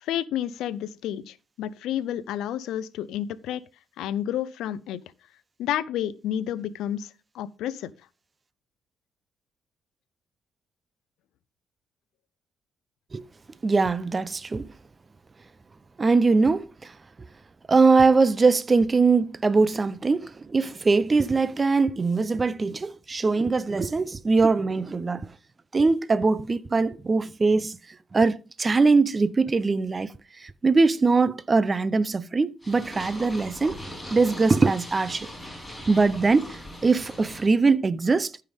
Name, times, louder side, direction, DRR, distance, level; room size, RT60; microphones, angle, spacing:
voice 1, 0.0-3.6 4.0-5.0 5.6-7.9, left 11 dB, 90° left, 0.5 m, -30 dB
voice 2, 13.6-14.7 16.0-16.9 17.7-25.3 25.7-27.8 28.1-30.1 30.4-33.8 34.1-35.3 35.9-38.3, right 4 dB, 30° right, 0.6 m, -22 dB
Purr, 32.6-37.5, equal, ahead, 5.8 m, -40 dB
13.0 x 5.6 x 3.5 m
cardioid pair, 80°, 0 cm